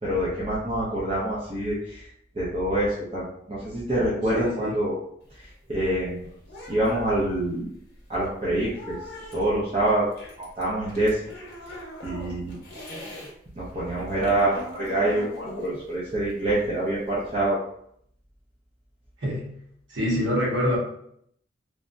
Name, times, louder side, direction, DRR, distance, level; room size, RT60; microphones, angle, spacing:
voice 1, 0.0-2.1 2.3-5.0 5.4-6.3 6.7-7.7 8.1-9.0 9.3-10.1 10.4-11.2 12.0-12.6 13.6-17.6, right 1 dB, 30° right, -8 dB, 0.6 m, -26 dB
voice 2, 4.1-4.7 19.2-19.4 19.9-20.8, left 1 dB, 75° right, -5 dB, 1.2 m, -26 dB
sound 1, 5.2-13.3 13.6-17.4, left 1 dB, 55° left, 0.9 m, -42 dB
3.3 x 2.1 x 2.6 m, 0.69 s
head